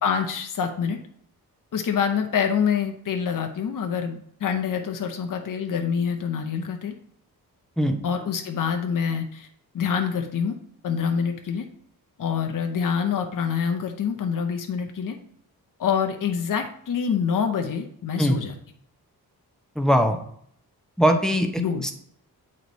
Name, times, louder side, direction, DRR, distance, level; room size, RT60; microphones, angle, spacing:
voice 1, 0.0-1.0 1.7-6.9 8.0-9.5 9.7-10.6 10.8-11.6 12.2-15.2 15.8-18.5 21.6-21.9, left 7 dB, 55° left, 4 dB, 0.8 m, -26 dB
voice 2, 19.8-20.2 21.0-21.5 21.8-21.9, equal, ahead, 4 dB, 0.8 m, -20 dB
8.5 x 3.2 x 4.0 m, 0.65 s
wide cardioid pair, 95°, 38 cm